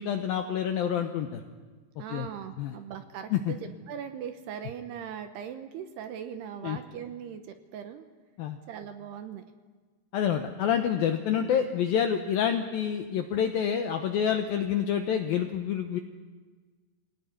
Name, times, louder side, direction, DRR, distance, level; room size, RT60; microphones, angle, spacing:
voice 1, 0.0-1.4 2.1-2.3 2.6-2.8 3.3-3.5 6.6-6.8 8.4-8.6 10.1-16.0, left 8 dB, 80° left, 5 dB, 2.1 m, -27 dB
voice 2, 2.0-8.1 8.7-9.4 11.3-11.7, right 8 dB, 75° right, 8 dB, 2.7 m, -40 dB
25.5 x 18.5 x 9.5 m, 1.4 s
omnidirectional pair, 5.5 m